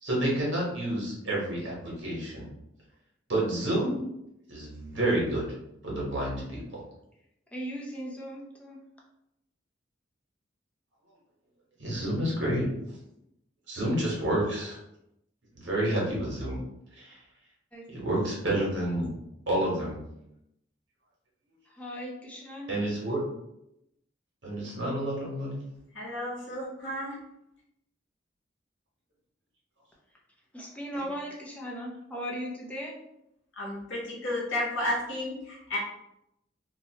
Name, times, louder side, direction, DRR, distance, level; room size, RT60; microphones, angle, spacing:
voice 1, 0.0-2.5 3.3-4.0 4.5-5.5 5.8-6.6 11.8-12.6 13.7-14.8 15.5-16.6 17.0-17.2 17.9-19.1 19.5-20.0 22.7-23.2 24.4-25.6, right 1 dB, 70° right, -5 dB, 1.2 m, -29 dB
voice 2, 7.5-8.8 17.7-17.9 18.2-18.4 21.8-22.8 30.5-33.0, equal, 5° left, -3 dB, 0.5 m, -38 dB
voice 3, 25.9-27.2 30.9-31.1 33.6-35.8, left 1 dB, 85° left, -5 dB, 1.1 m, -32 dB
2.7 x 2.1 x 2.8 m, 0.82 s
head